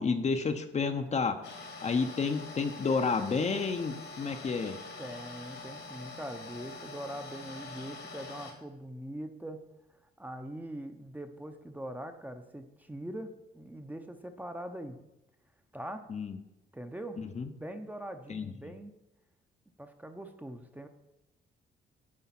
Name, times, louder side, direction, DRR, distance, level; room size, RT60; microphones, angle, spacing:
voice 1, 0.0-1.4 1.8-4.8 16.1-16.4 17.2-17.5 18.3-18.5, left 4 dB, 35° left, 7 dB, 0.7 m, -30 dB
sound 1, 1.4-8.5, left 3 dB, 70° left, 1.7 m, -45 dB
voice 2, 5.0-9.6 10.2-15.0 15.7-16.0 16.7-17.2 17.5-18.9 19.8-20.9, right 1 dB, 10° right, 6 dB, 0.7 m, -42 dB
9.5 x 3.6 x 5.9 m, 0.92 s
cardioid pair, 90°, 20 cm